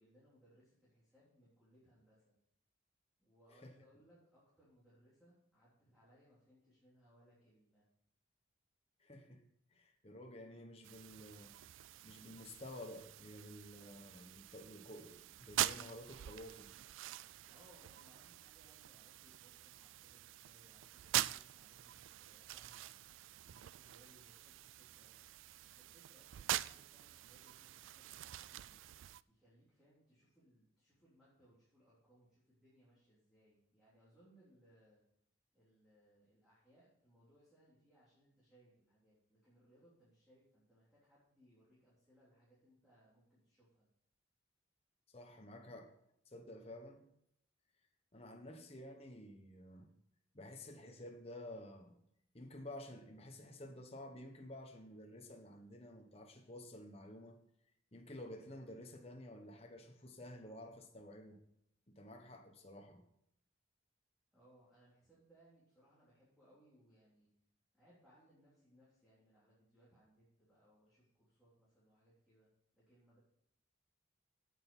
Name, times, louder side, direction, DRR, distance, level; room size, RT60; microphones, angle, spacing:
voice 1, 0.0-2.4 3.2-7.9 17.5-22.9 23.4-25.1 25.6-28.8 29.3-35.0 35.5-43.9 64.3-67.3 67.7-73.2, equal, ahead, 3.5 m, -69 dB
voice 2, 9.0-9.4 9.7-11.6 12.0-16.7 45.1-45.9 46.3-47.1 48.1-49.9 50.3-51.9 52.3-57.4 57.9-61.4 61.9-63.0, left 1 dB, 30° left, 1.2 m, -52 dB
sound 1, 10.8-29.2, right 13 dB, 75° right, 0.3 m, -45 dB
8.8 x 8.2 x 5.5 m
head